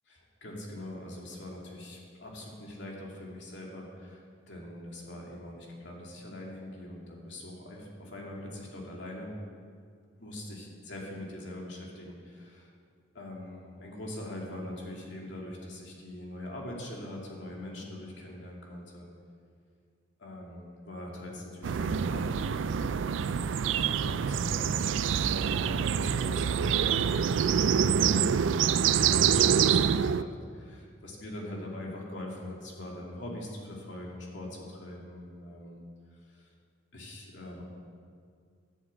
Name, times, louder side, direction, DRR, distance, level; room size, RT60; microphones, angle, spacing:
voice 1, 0.1-9.3 10.2-12.7 13.1-19.1 20.2-22.8 24.0-35.8 36.1-36.5 36.9-37.6, left 1 dB, 65° left, -2 dB, 2.6 m, -43 dB
sound 1, 21.6-30.2, right 7 dB, 75° right, 0.4 m, -26 dB
11.5 x 7.4 x 8.5 m, 2.1 s
head